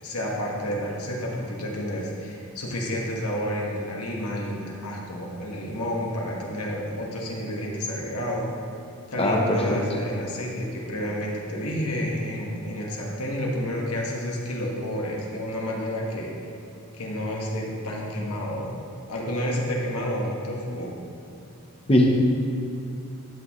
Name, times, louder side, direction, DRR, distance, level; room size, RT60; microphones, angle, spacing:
voice 1, 0.0-8.5 9.1-16.3 17.0-18.8 19.1-20.9, equal, 90° left, -2 dB, 1.5 m, -30 dB
voice 2, 9.2-9.8 21.9-22.1, left 1 dB, 25° left, 0 dB, 0.8 m, -20 dB
12.0 x 6.4 x 3.1 m, 2.7 s
head